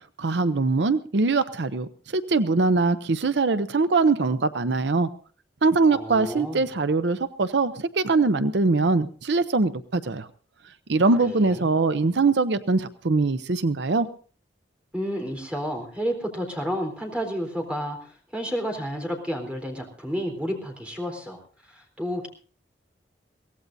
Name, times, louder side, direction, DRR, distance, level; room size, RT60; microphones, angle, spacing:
voice 1, 0.2-5.1 5.6-10.3 10.9-14.1, right 3 dB, 70° right, 12 dB, 0.7 m, -22 dB
voice 2, 5.9-6.6 11.2-11.6 14.9-22.3, equal, 5° right, 2 dB, 3.8 m, -31 dB
23.5 x 17.5 x 2.7 m, 0.42 s
head